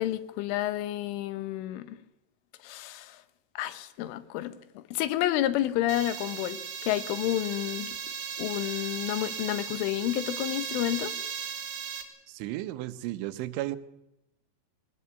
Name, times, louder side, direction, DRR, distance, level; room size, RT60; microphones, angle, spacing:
voice 1, 0.0-2.0 2.6-3.2 3.6-8.0 8.4-11.2, left 14 dB, 90° left, 3.6 m, -30 dB
sound 1, 5.9-12.0, right 7 dB, 50° right, 3.3 m, -37 dB
voice 2, 12.3-13.8, right 15 dB, 80° right, 3.3 m, -34 dB
22.0 x 18.5 x 8.4 m
omnidirectional pair, 5.5 m